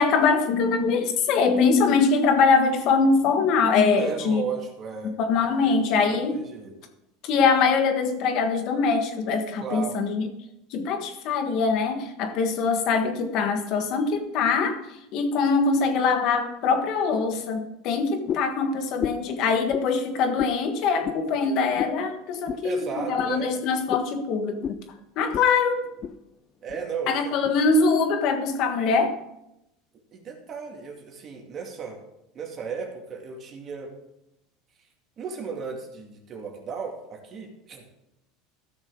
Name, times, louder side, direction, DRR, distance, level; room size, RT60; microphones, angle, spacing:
voice 1, 0.0-4.4 5.2-6.4 7.2-10.3 10.7-14.8 15.1-24.8 25.2-25.9 27.1-29.1, left 4 dB, 55° left, 6 dB, 1.5 m, -23 dB
voice 2, 4.0-5.8 6.0-6.7 9.6-10.0 22.6-23.5 26.6-27.4 30.1-32.0 32.3-33.9 35.2-37.9, right 5 dB, 35° right, 1 dB, 2.2 m, -35 dB
sound 1, 18.3-18.6 19.0-19.3 19.7-19.9 20.4-20.6 21.0-21.2 21.8-22.0 22.5-22.6 23.1-23.3 23.9-24.1 24.6-24.8 25.3-25.5 25.8-26.2 26.7-26.8 27.4-27.6, left 8 dB, 35° left, 0.5 m, -31 dB
14.5 x 6.3 x 3.8 m, 0.87 s
supercardioid pair, 125°, 0 cm